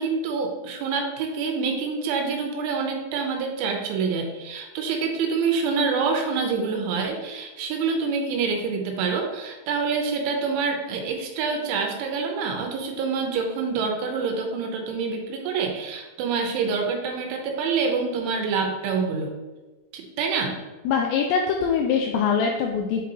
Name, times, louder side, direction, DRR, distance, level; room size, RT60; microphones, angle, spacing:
voice 1, 0.0-19.3 19.9-20.6, right 5 dB, 85° right, 2 dB, 3.2 m, -26 dB
voice 2, 20.9-23.0, left 6 dB, 85° left, 2 dB, 2.5 m, -23 dB
8.2 x 4.1 x 2.8 m, 1.2 s
omnidirectional pair, 5.5 m